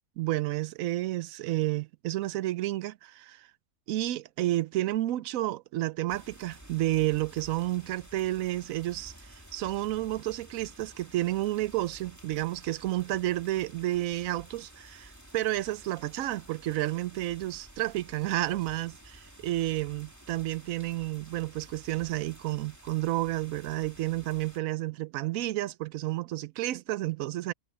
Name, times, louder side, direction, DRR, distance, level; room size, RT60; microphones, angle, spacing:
voice 1, 0.2-3.5 3.9-9.1 9.5-27.5, right 16 dB, 70° right, 0.9 m, -31 dB
sound 1, 6.1-24.6, right 1 dB, 10° right, 2.4 m, -52 dB
omnidirectional pair, 1.6 m